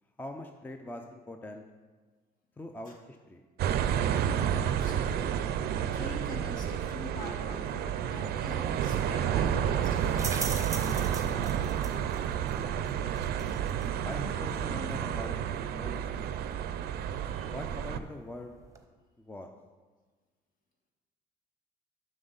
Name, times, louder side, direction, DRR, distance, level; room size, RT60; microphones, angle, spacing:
voice 1, 0.2-1.6 2.6-3.4 14.0-15.4 15.7-16.7 17.4-18.6 19.2-19.5, left 1 dB, 10° left, 5 dB, 0.4 m, -43 dB
sound 1, 3.6-18.0, right 9 dB, 65° right, 0.4 m, -30 dB
voice 2, 4.6-5.5 5.8-11.7 17.0-17.6, left 3 dB, 55° left, 0 dB, 1.7 m, -45 dB
sound 2, 8.2-18.8, right 4 dB, 20° right, 0.8 m, -44 dB
7.5 x 6.2 x 3.9 m, 1.4 s
cardioid pair, 110°, 17 cm